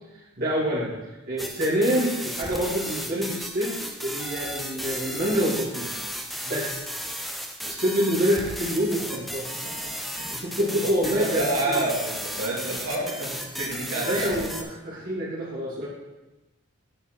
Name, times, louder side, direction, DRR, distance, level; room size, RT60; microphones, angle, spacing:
voice 1, 0.4-0.9 1.3-5.9 6.4-6.8 7.7-9.5 10.4-11.4 13.9-15.9, equal, 45° right, -10 dB, 2.4 m, -26 dB
sound 1, 1.4-14.6, equal, ahead, 0.5 m, -34 dB
voice 2, 9.5-10.3 10.8-14.5 14.9-15.0, right 2 dB, 80° right, -4 dB, 2.4 m, -29 dB
9.1 x 5.3 x 4.5 m, 1.1 s
head